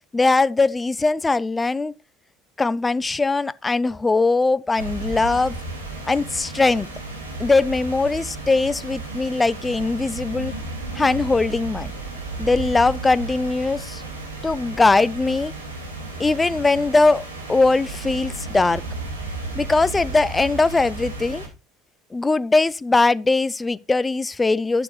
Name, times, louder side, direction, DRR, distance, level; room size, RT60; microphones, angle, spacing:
voice 1, 0.1-1.9 2.6-5.5 6.1-6.9 7.4-10.5 10.9-11.9 12.4-14.0 14.4-15.5 16.2-18.8 19.6-21.4 22.1-24.8, left 3 dB, 20° left, 0.6 m, -20 dB
sound 1, 4.8-21.5, right 2 dB, 85° right, 3.0 m, -33 dB
11.5 x 10.5 x 3.2 m
figure-of-eight pair, 60°, 0 cm